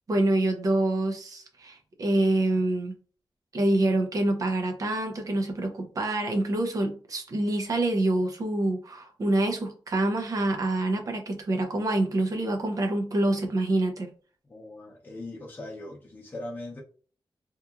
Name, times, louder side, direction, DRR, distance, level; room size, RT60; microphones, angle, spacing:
voice 1, 0.1-2.9 3.5-14.1, right 1 dB, 40° right, 4 dB, 0.5 m, -26 dB
voice 2, 14.5-16.8, left 2 dB, 20° left, -4 dB, 0.7 m, -40 dB
2.8 x 2.3 x 2.3 m, 0.40 s
wide cardioid pair, 160°, 9 cm